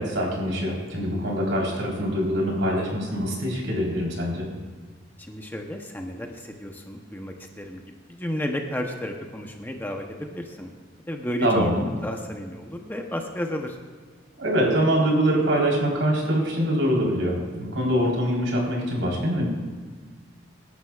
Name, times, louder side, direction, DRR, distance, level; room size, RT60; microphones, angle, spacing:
voice 1, 0.0-4.5 11.4-11.8 14.4-19.4, equal, 75° right, -3 dB, 4.0 m, -24 dB
voice 2, 5.2-7.8 8.1-10.7 11.1-13.8, left 1 dB, 10° left, 3 dB, 0.8 m, -32 dB
23.5 x 11.5 x 2.4 m, 1.5 s
head